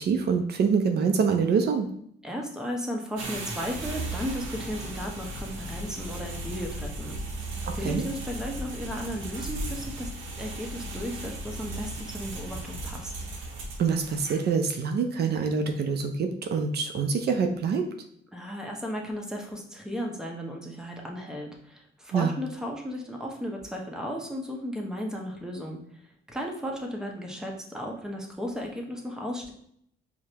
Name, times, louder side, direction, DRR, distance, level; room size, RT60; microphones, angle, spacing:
voice 1, 0.0-1.9 7.6-8.0 13.8-17.9 22.1-22.3, right 5 dB, 55° right, 5 dB, 0.4 m, -25 dB
voice 2, 2.2-10.1 10.4-13.1 18.3-26.0 26.3-29.5, equal, 5° right, 0 dB, 0.7 m, -35 dB
sound 1, 3.2-14.6, right 1 dB, 80° right, 0.8 m, -36 dB
4.7 x 2.1 x 2.8 m, 0.68 s
cardioid pair, 90°, 20 cm